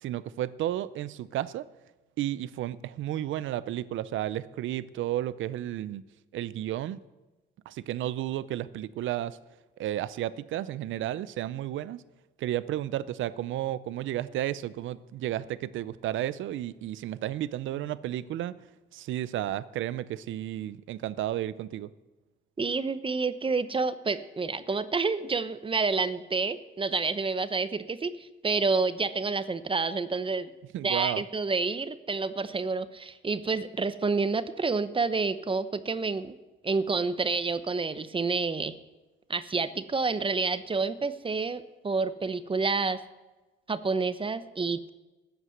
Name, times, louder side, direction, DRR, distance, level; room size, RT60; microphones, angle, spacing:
voice 1, 0.0-1.7 2.2-6.0 6.3-7.0 7.7-9.4 9.8-12.0 12.4-18.6 18.9-21.9 30.7-31.2, right 13 dB, 75° right, 17 dB, 0.6 m, -32 dB
voice 2, 22.6-30.5 30.8-36.3 36.6-38.8 39.3-43.0 43.7-44.9, right 4 dB, 25° right, 13 dB, 0.8 m, -29 dB
13.5 x 8.1 x 7.9 m, 1.1 s
cardioid pair, 90°, 20 cm